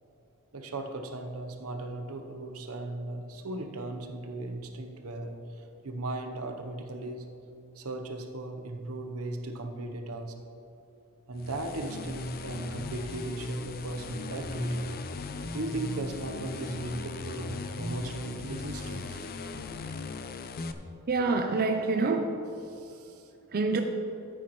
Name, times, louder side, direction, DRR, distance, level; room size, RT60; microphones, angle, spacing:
voice 1, 0.5-7.3 7.8-10.4 11.3-14.9 15.5-19.3 19.7-19.8 22.7-23.3, right 2 dB, 75° right, 5 dB, 0.9 m, -37 dB
sound 1, 11.4-20.7, left 2 dB, 45° left, 0.5 m, -37 dB
voice 2, 21.1-22.3 23.5-23.8, right 3 dB, 45° right, 4 dB, 0.5 m, -26 dB
13.5 x 8.9 x 3.1 m, 2.8 s
head